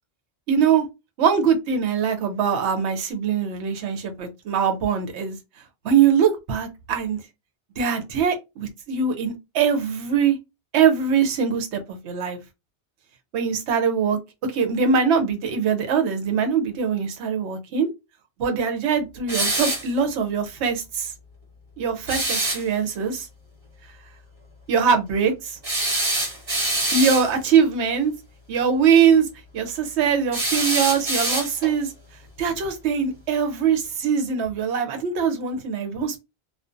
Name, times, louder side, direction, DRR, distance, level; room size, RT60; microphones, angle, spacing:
voice 1, 0.5-0.8 1.2-5.4 5.8-7.2 7.8-10.4 10.7-12.4 13.3-17.9 18.4-21.1 21.8-23.3 24.7-25.6 26.9-28.1 28.5-29.3 29.5-31.9 32.4-36.2, right 6 dB, 75° right, 0.9 m, -22 dB
sound 1, 19.3-19.9 22.1-22.6 25.6-27.3 30.3-31.8, right 2 dB, 55° right, 1.2 m, -24 dB
2.4 x 2.1 x 2.5 m
omnidirectional pair, 1.2 m